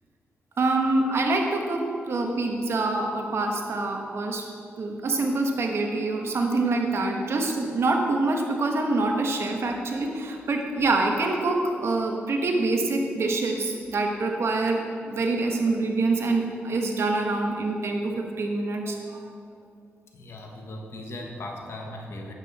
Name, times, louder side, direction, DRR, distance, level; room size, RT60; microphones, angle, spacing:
voice 1, 0.6-4.4 4.8-19.0, right 2 dB, 65° right, 2 dB, 1.3 m, -25 dB
voice 2, 20.1-22.3, left 1 dB, 65° left, 1 dB, 1.5 m, -38 dB
9.7 x 8.4 x 4.3 m, 2.3 s
cardioid pair, 70°, 5 cm